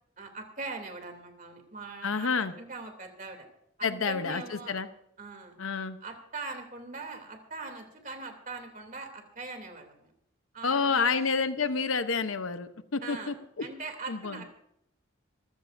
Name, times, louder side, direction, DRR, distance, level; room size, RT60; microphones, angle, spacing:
voice 1, 0.2-3.5 3.8-4.8 5.2-5.5 6.0-10.1 10.5-11.2 13.0-13.3 13.6-14.5, right 3 dB, 40° right, 4 dB, 2.9 m, -41 dB
voice 2, 2.0-2.5 3.8-4.9 5.6-6.0 10.6-13.7 14.1-14.4, left 5 dB, 80° left, 10 dB, 0.9 m, -29 dB
25.0 x 15.0 x 2.7 m, 0.77 s
head